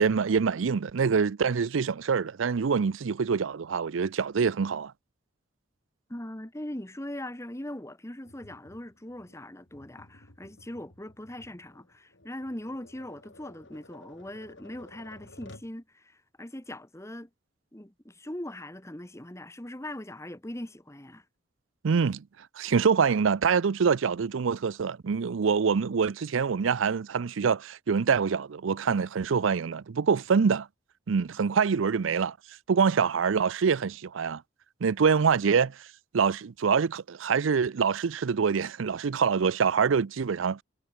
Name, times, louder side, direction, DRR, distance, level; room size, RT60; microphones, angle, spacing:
voice 1, 0.0-4.9 21.8-22.2 22.6-30.7 31.1-32.4 32.7-34.4 34.8-35.8 36.1-40.6, right 6 dB, 80° right, 0.5 m, -25 dB
voice 2, 6.1-17.3 17.7-21.2, left 1 dB, 15° left, 1.4 m, -40 dB
Tap, 8.2-15.8, left 2 dB, 70° left, 3.5 m, -54 dB
head